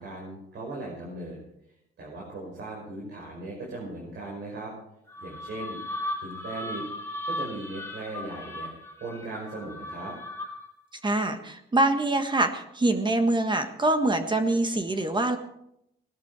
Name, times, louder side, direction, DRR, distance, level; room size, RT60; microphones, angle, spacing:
voice 1, 0.0-1.4 2.0-4.7 5.2-5.8 6.2-6.8 7.2-8.7 9.0-10.1, right 2 dB, 65° right, -3 dB, 5.5 m, -38 dB
sound 1, 5.1-10.8, left 1 dB, 15° left, 2.6 m, -37 dB
voice 2, 11.0-15.4, right 2 dB, 25° right, 7 dB, 1.5 m, -24 dB
18.0 x 12.5 x 4.8 m, 0.79 s
cardioid pair, 90°, 20 cm